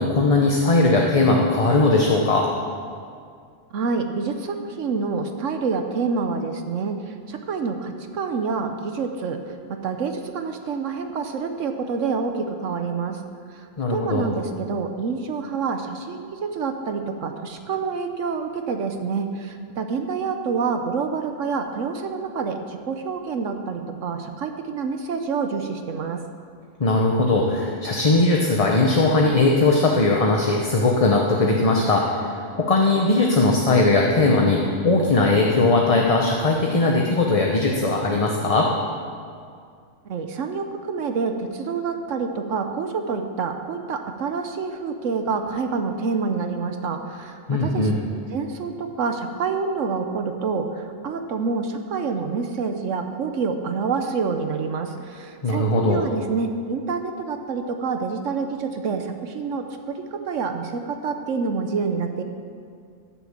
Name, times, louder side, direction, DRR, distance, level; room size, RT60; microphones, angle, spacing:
voice 1, 0.0-2.5 13.8-14.3 26.8-38.7 47.5-48.0 55.4-56.1, left 2 dB, 30° left, 0 dB, 0.9 m, -19 dB
voice 2, 3.7-7.0 7.3-9.4 9.7-13.2 13.5-13.6 13.9-26.2 40.1-47.9 48.3-62.2, right 5 dB, 75° right, 6 dB, 1.1 m, -27 dB
14.5 x 7.1 x 7.3 m, 2.2 s
omnidirectional pair, 1.3 m